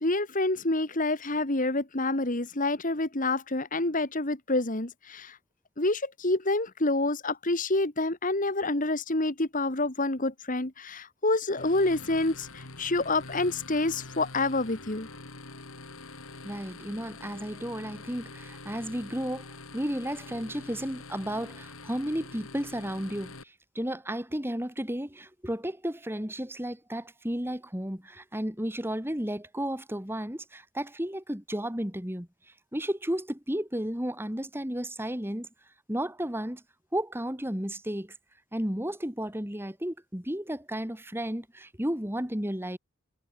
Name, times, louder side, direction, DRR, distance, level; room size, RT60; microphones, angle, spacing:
voice 1, 0.0-5.4 5.8-15.1, left 2 dB, 40° left, 2.0 m, -28 dB
sound 1, 11.6-23.4, left 3 dB, 75° left, 4.9 m, -45 dB
voice 2, 16.4-32.3 32.7-35.5 35.9-36.6 36.9-38.1 38.5-42.8, equal, 10° right, 2.7 m, -33 dB
head